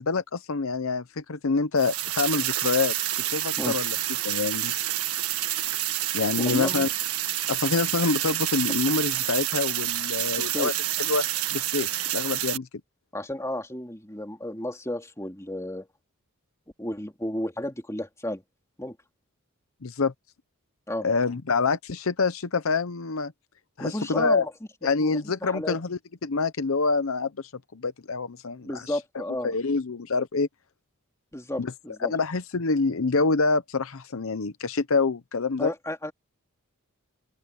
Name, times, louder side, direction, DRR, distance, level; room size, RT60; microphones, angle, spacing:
voice 1, 0.0-2.9 3.3-4.0 4.2-4.7 6.1-6.9 7.5-10.7 11.1-11.3 11.5-12.7 19.8-20.1 21.0-23.3 23.8-24.4 24.8-30.5 31.6-31.7 32.0-35.7, left 4 dB, 70° left, 0.8 m, -26 dB
sound 1, 1.8-12.6, right 13 dB, 90° right, 1.7 m, -28 dB
voice 2, 6.4-6.9 10.4-10.7 13.1-15.9 16.8-18.4 18.8-19.0 20.9-21.1 23.8-24.5 25.0-25.8 28.6-29.5 31.3-32.1 35.6-36.1, left 1 dB, 15° left, 3.0 m, -32 dB
open air
head